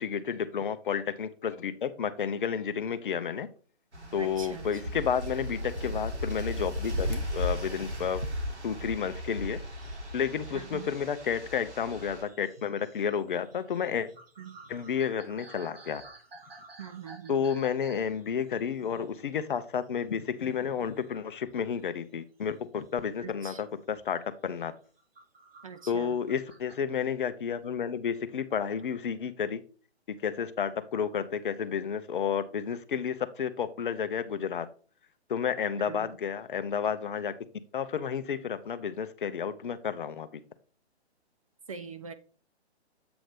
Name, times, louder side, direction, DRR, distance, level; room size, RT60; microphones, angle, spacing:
voice 1, 0.0-3.5 4.1-8.2 8.6-9.6 10.1-14.1 14.7-16.0 17.3-24.7 25.9-29.6 30.2-34.7 35.3-37.3 37.7-40.4, left 7 dB, 50° left, 11 dB, 0.7 m, -31 dB
sound 1, 3.9-12.2, left 1 dB, 85° right, 1.8 m, -36 dB
voice 2, 4.2-4.7 10.5-10.9 14.4-14.6 16.8-17.3 23.2-23.6 25.6-26.1 35.9-36.1 41.7-42.1, right 6 dB, 30° right, 9 dB, 0.4 m, -42 dB
sound 2, 9.7-20.2 20.4-21.1 21.4-22.9 23.3-23.5 23.9-24.1 24.6-26.8, right 3 dB, 60° right, 1.8 m, -53 dB
7.9 x 3.0 x 5.1 m, 0.40 s
figure-of-eight pair, 130°, 33 cm